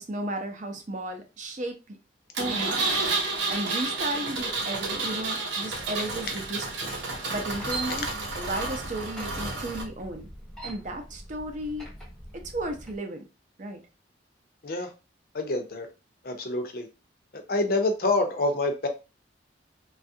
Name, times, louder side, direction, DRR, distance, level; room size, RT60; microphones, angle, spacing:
voice 1, 0.0-2.0 2.4-3.0 3.5-6.9 7.3-8.1 8.3-10.3 10.6-11.9 12.3-13.2 13.6-13.8, right 1 dB, 40° right, 0.5 m, -34 dB
Engine, 2.4-9.8, right 3 dB, 80° right, 0.7 m, -30 dB
sound 1, 7.4-13.0, right 2 dB, ahead, 0.7 m, -42 dB
voice 2, 15.3-15.9 16.2-16.9 17.3-18.9, left 2 dB, 50° left, 0.6 m, -27 dB
3.2 x 2.3 x 2.7 m
head